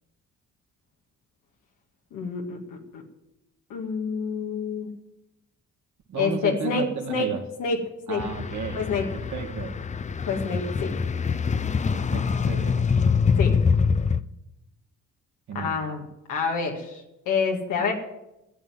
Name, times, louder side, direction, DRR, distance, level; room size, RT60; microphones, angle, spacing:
voice 1, 2.1-2.6 2.9-3.0 3.7-4.9 6.2-7.3 7.6-7.8 8.1-8.2 8.7-9.1 10.3-11.1 13.4-13.5 15.5-16.0 16.3-17.9, left 5 dB, 85° left, 1 dB, 2.0 m, -27 dB
voice 2, 6.1-7.4 8.1-8.9 9.1-9.8 11.9-12.9 15.5-15.8, right 6 dB, 70° right, 2 dB, 2.1 m, -34 dB
sound 1, 8.2-14.2, left 5 dB, 25° left, 0.5 m, -24 dB
14.0 x 7.5 x 9.1 m, 0.90 s
cardioid pair, 90°, 30 cm